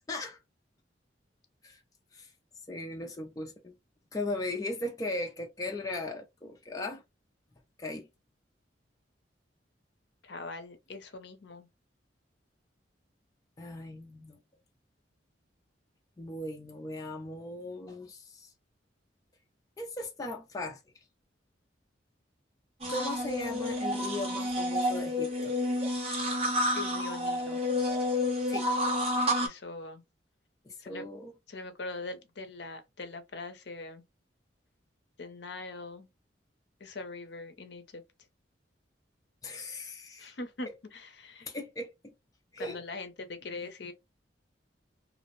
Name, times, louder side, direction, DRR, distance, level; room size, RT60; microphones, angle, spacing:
voice 1, 0.1-0.4 1.6-1.8 2.1-2.3 2.7-3.8 4.1-7.0 7.8-8.1 13.6-14.4 16.2-18.5 19.8-20.8 22.9-25.5 28.5-28.7 30.6-31.3 39.4-40.4 41.5-42.1 42.5-42.8, left 2 dB, 20° left, 0.4 m, -38 dB
voice 2, 10.2-11.7 26.7-27.6 29.4-30.0 30.8-31.1 31.5-34.0 35.2-36.1 36.8-38.0 40.2-41.5 42.6-43.9, left 3 dB, 65° left, 0.6 m, -42 dB
sound 1, 22.8-29.5, left 1 dB, 30° right, 0.6 m, -30 dB
2.5 x 2.0 x 3.0 m
head